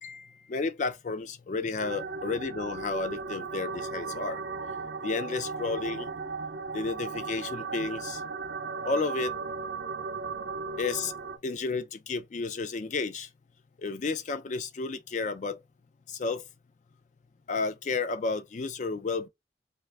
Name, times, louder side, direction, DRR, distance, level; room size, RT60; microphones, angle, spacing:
voice 1, 0.0-4.4 5.0-6.1 6.7-8.2 8.8-9.3 10.8-11.1 11.4-13.3 13.8-15.6 16.1-16.4 17.5-19.3, left 4 dB, 40° left, 0.4 m, -32 dB
sound 1, 1.8-11.4, right 4 dB, 75° right, 0.5 m, -36 dB
3.2 x 2.4 x 3.2 m
head